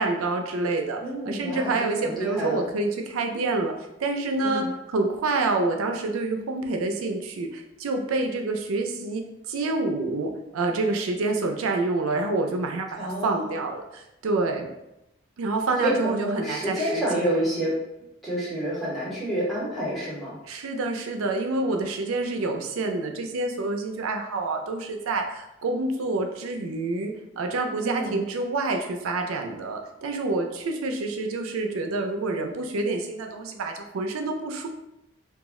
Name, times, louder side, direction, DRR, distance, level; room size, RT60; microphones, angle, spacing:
voice 1, 0.0-1.0 1.2-14.7 15.4-17.3 20.5-34.7, right 3 dB, 90° right, 4 dB, 0.4 m, -27 dB
voice 2, 1.0-2.7 4.4-4.7 13.0-13.5 15.8-17.8 18.2-20.4 27.8-28.2, right 1 dB, ahead, -7 dB, 0.7 m, -28 dB
2.4 x 2.0 x 3.5 m, 0.88 s
head